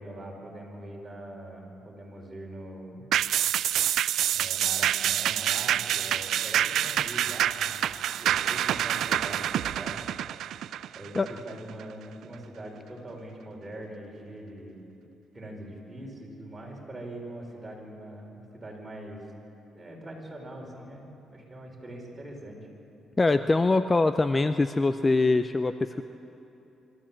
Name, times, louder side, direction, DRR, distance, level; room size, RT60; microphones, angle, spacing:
voice 1, 0.0-3.0 4.3-7.9 8.2-10.0 10.9-14.8 15.3-19.2 19.7-22.6, right 1 dB, 20° right, -1 dB, 5.1 m, -42 dB
sound 1, 3.1-11.8 12.2-12.3, right 11 dB, 75° right, 0.3 m, -27 dB
voice 2, 23.2-26.0, left 3 dB, 25° left, 10 dB, 0.5 m, -23 dB
26.0 x 13.5 x 7.5 m, 2.9 s
cardioid pair, 90°, 0 cm